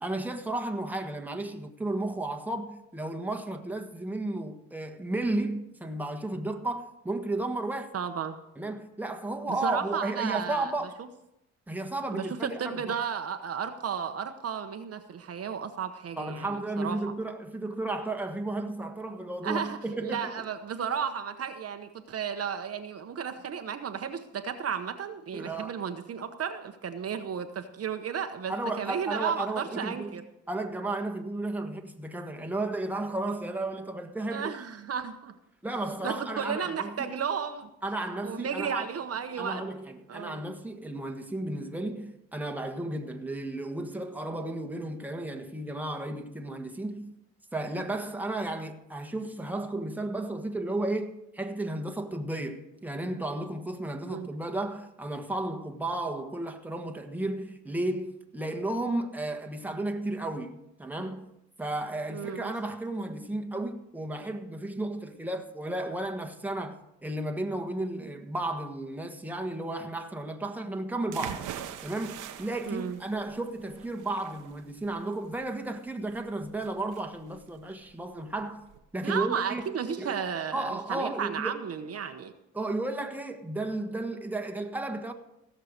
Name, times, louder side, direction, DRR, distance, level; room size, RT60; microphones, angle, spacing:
voice 1, 0.0-7.9 8.6-11.0 11.7-13.0 16.2-20.3 25.3-25.8 28.5-30.2 30.5-34.5 35.6-37.1 37.8-38.9 39.4-47.1 47.5-61.3 61.6-66.8 67.0-71.5 71.8-78.6 78.9-79.6 80.0-80.2 80.5-81.6 82.5-85.1, right 2 dB, 5° right, 1.4 m, -33 dB
voice 2, 7.9-8.4 9.5-10.7 11.0-11.1 12.1-17.0 19.4-30.2 34.3-35.3 36.0-37.7 38.2-39.6 40.1-40.4 54.1-54.3 62.1-62.5 72.7-73.0 79.0-82.3, right 7 dB, 50° right, 1.0 m, -33 dB
sound 1, 71.1-78.8, right 10 dB, 85° right, 1.1 m, -43 dB
16.5 x 6.6 x 6.6 m
cardioid pair, 90°, 30 cm